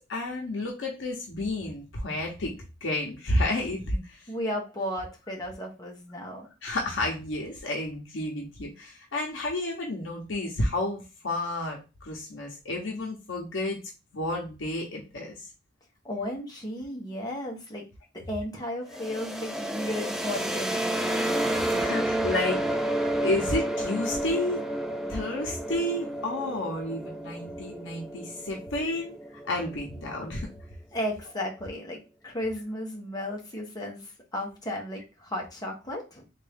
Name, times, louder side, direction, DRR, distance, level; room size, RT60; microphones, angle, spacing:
voice 1, 0.1-2.5 2.8-4.2 6.6-13.8 14.1-15.4 21.7-22.6 23.2-24.6 25.1-29.2 29.5-30.5, left 1 dB, 75° left, -1 dB, 0.9 m, -31 dB
voice 2, 4.3-6.5 16.0-17.8 18.1-21.2 30.9-36.2, left 1 dB, 20° left, -1 dB, 1.1 m, -34 dB
sound 1, 18.9-30.6, right 1 dB, ahead, 0.4 m, -31 dB
3.6 x 2.6 x 3.5 m, 0.29 s
head